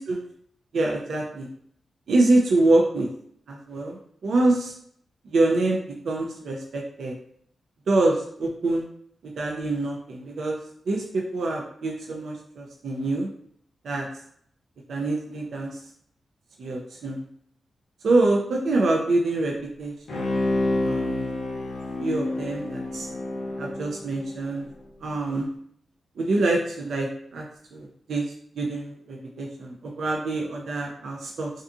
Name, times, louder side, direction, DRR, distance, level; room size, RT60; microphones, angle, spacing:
voice 1, 0.7-1.5 2.1-3.1 3.5-4.7 5.2-7.1 7.9-8.9 9.2-10.6 10.9-13.3 13.8-14.1 14.9-15.8 16.6-17.2 18.0-20.4 20.8-21.2 22.0-23.1 23.6-24.6 25.0-25.5 26.2-27.4 27.7-28.2 28.6-31.5, right 2 dB, 75° right, -1 dB, 0.4 m, -25 dB
Bowed string instrument, 20.1-24.7 25.1-25.2, left 2 dB, 75° left, 0.6 m, -28 dB
2.5 x 2.5 x 2.3 m, 0.66 s
cardioid pair, 50°, 0 cm